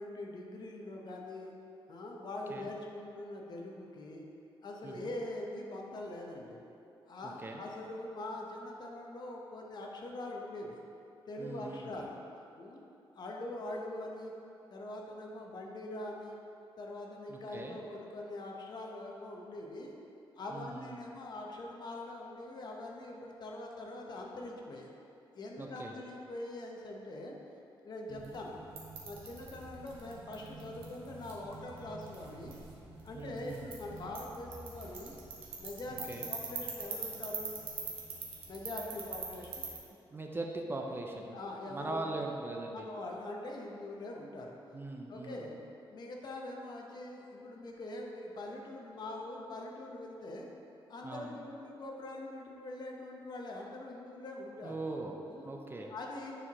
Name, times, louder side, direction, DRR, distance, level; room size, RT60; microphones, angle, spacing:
voice 1, 0.0-1.5 1.9-4.2 4.6-6.6 7.1-10.8 11.3-12.2 12.6-12.8 13.1-14.3 14.7-16.4 16.8-19.9 20.4-24.9 25.3-27.4 27.8-28.6 29.0-32.5 33.0-35.1 35.6-37.6 38.5-39.7 41.3-42.1 42.7-44.6 45.1-45.5 45.9-50.5 50.9-54.8 55.3-55.5 55.9-56.3, left 2 dB, 50° left, 0 dB, 0.9 m, -43 dB
voice 2, 4.8-5.2 7.2-7.6 11.4-11.9 17.3-17.8 20.5-21.0 25.6-25.9 28.1-28.4 33.1-33.7 36.1-36.3 40.1-41.4 41.7-42.9 44.7-45.5 51.0-51.4 54.6-55.1 55.4-55.9, right 2 dB, 25° right, 1 dB, 0.5 m, -41 dB
sound 1, 28.1-39.8, right 4 dB, 85° right, 1.2 m, -44 dB
9.7 x 4.6 x 3.0 m, 2.8 s
cardioid pair, 120°, 9 cm